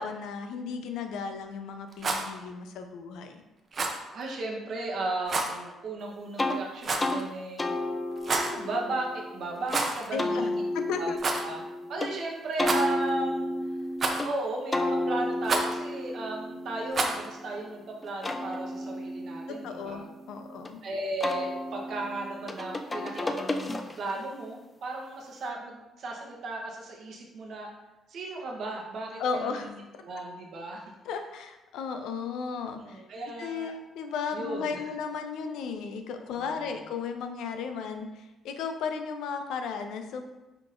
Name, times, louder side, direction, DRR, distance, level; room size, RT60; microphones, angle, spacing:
voice 1, 0.0-3.4 10.1-10.5 10.7-11.2 19.5-20.8 29.2-29.7 31.0-33.0 33.4-40.2, left 5 dB, 85° left, 6 dB, 0.4 m, -35 dB
Rattle, 1.9-2.3 3.7-4.0 5.3-5.5 6.8-7.2 8.2-8.6 9.7-10.1 10.4-10.5 11.2-11.5 12.6-13.1 14.0-14.4 15.4-15.7 16.9-17.3, right 3 dB, 40° right, 0.5 m, -29 dB
voice 2, 4.1-7.7 8.3-10.6 11.0-11.1 11.4-13.8 14.2-20.1 20.8-27.7 28.1-30.8 32.8-33.7 34.3-34.8 36.3-36.8, right 2 dB, 60° right, 0 dB, 0.8 m, -35 dB
sound 1, 6.4-6.6 7.0-7.2 7.6-9.8 10.2-12.1 12.6-14.3 14.7-17.6 18.0-20.7 21.2-24.2, left 1 dB, 20° left, 0.3 m, -32 dB
5.7 x 2.9 x 2.5 m, 1.0 s
cardioid pair, 120°, 0 cm